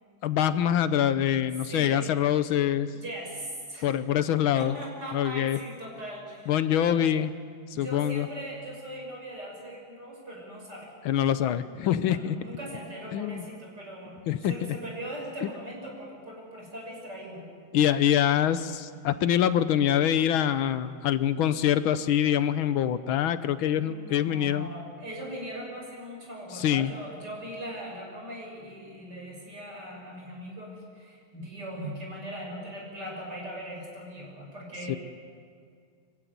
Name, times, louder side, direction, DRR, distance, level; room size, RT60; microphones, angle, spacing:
voice 1, 0.2-2.9 3.8-4.7 5.1-5.6 6.5-7.3 7.7-8.3 11.0-12.4 13.1-13.4 14.3-14.5 15.4-15.5 17.7-24.7 26.5-26.9 34.9-35.0, left 10 dB, 85° left, 12 dB, 1.6 m, -25 dB
voice 2, 1.6-2.1 2.9-4.0 4.5-7.1 7.7-11.0 12.0-17.5 23.8-35.0, equal, 55° right, -1 dB, 6.8 m, -40 dB
25.5 x 15.5 x 9.3 m, 2.1 s
omnidirectional pair, 2.2 m